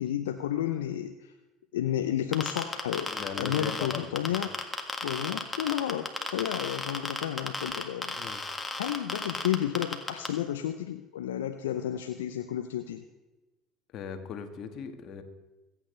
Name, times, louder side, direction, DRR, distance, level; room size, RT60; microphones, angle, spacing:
voice 1, 0.0-1.3 1.7-4.6 5.0-8.2 8.5-13.0, left 11 dB, 85° left, 8 dB, 0.5 m, -32 dB
sound 1, 2.3-10.3, left 2 dB, 15° left, 1.8 m, -33 dB
voice 2, 3.1-4.4 8.2-8.4 13.9-15.2, left 6 dB, 55° left, 6 dB, 1.6 m, -39 dB
25.0 x 8.9 x 3.3 m, 1.1 s
hypercardioid pair, 70°, 0 cm